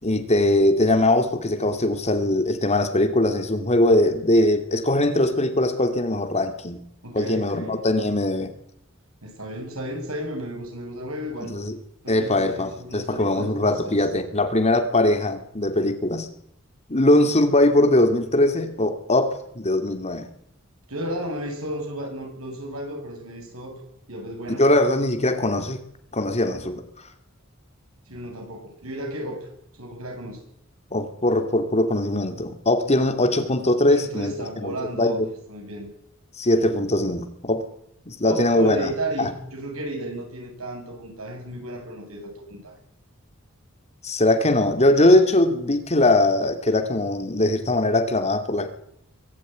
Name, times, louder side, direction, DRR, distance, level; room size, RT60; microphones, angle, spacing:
voice 1, 0.0-6.8 7.1-8.5 11.5-11.8 12.1-16.3 16.9-20.3 24.6-25.8 26.1-26.8 30.9-34.3 34.6-35.3 36.4-37.6 38.1-38.9 39.2-39.3 44.0-48.7, left 1 dB, 30° left, 7 dB, 2.6 m, -21 dB
voice 2, 7.0-7.8 9.2-11.6 12.0-14.0 20.9-23.8 24.1-24.6 28.1-29.5 29.8-30.4 33.9-35.2 35.5-35.9 38.2-42.8, right 1 dB, 85° right, 3 dB, 7.9 m, -33 dB
23.5 x 15.5 x 9.5 m, 0.74 s
head